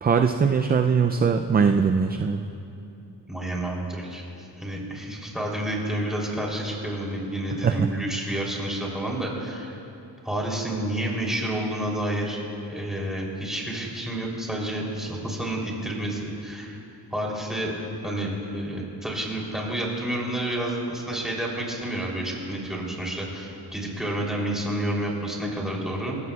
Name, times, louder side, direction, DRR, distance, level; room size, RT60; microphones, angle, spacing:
voice 1, 0.0-2.4 7.6-7.9, right 6 dB, 25° right, 6 dB, 0.3 m, -21 dB
voice 2, 3.3-4.2 4.6-9.8 10.2-12.4 12.7-16.8 17.1-17.7 18.0-26.2, right 1 dB, ahead, -3 dB, 3.1 m, -29 dB
28.0 x 15.0 x 2.3 m, 2.8 s
wide cardioid pair, 125°, 42 cm